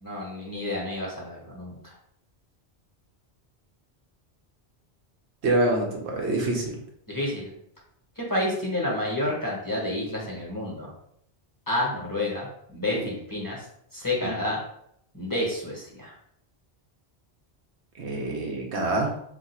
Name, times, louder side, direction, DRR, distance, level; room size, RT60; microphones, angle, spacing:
voice 1, 0.0-1.9 7.1-7.5 8.2-10.9 11.7-13.6 13.9-14.6 15.1-16.1, left 1 dB, 20° left, -4 dB, 0.9 m, -29 dB
voice 2, 5.4-6.8 12.9-13.1 14.2-14.3 18.0-19.1, right 2 dB, 85° right, 0 dB, 1.1 m, -26 dB
2.6 x 2.4 x 4.1 m, 0.71 s
omnidirectional pair, 1.1 m